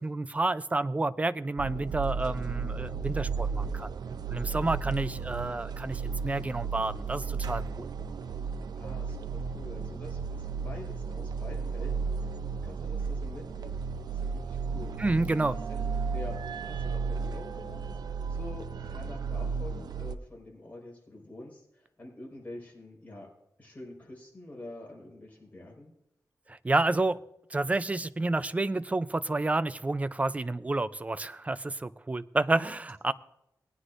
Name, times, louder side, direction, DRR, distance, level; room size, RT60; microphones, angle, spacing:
voice 1, 0.0-3.9 4.3-7.9 15.0-15.6 26.5-27.2 27.5-33.1, right 2 dB, 20° right, 14 dB, 0.4 m, -29 dB
sound 1, 1.6-20.2, right 5 dB, 75° right, 0.5 m, -34 dB
voice 2, 8.8-12.4 12.6-15.0 15.5-15.9 16.1-17.9 18.3-23.3 23.6-25.9, left 1 dB, 25° left, -2 dB, 4.6 m, -46 dB
19.5 x 9.7 x 2.5 m, 0.81 s
wide cardioid pair, 115°, 7 cm